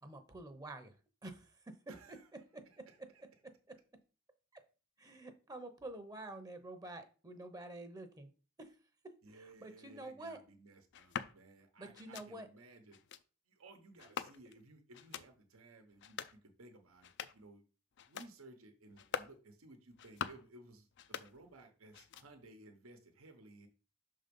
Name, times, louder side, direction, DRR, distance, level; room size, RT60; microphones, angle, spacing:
voice 1, 0.0-1.0 1.2-1.8 2.5-3.3 3.7-3.8 4.5-4.6 5.0-8.3 8.6-8.7 9.0-10.4 11.8-12.5, right 2 dB, 20° right, 8 dB, 0.7 m, -49 dB
voice 2, 1.9-2.3 2.9-3.2 9.2-13.0 13.5-17.6 18.0-23.7, right 2 dB, 85° right, 6 dB, 1.0 m, -58 dB
sound 1, 10.9-11.3 11.9-12.3 12.9-13.2 14.0-14.6 14.9-15.3 15.9-16.4 16.9-17.5 17.9-18.3 18.9-19.4 19.9-20.5 20.9-21.7 21.9-22.5, left 7 dB, 60° left, 0.4 m, -45 dB
6.1 x 3.8 x 5.3 m, 0.35 s
head